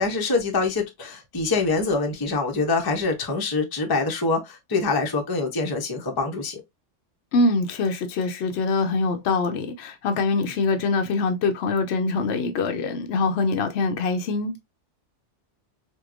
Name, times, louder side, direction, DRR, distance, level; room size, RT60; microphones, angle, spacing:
voice 1, 0.0-6.6, left 3 dB, 25° left, 0.6 m, -25 dB
voice 2, 7.3-14.5, left 3 dB, 65° left, 0.8 m, -24 dB
4.5 x 2.2 x 2.4 m
omnidirectional pair, 1.2 m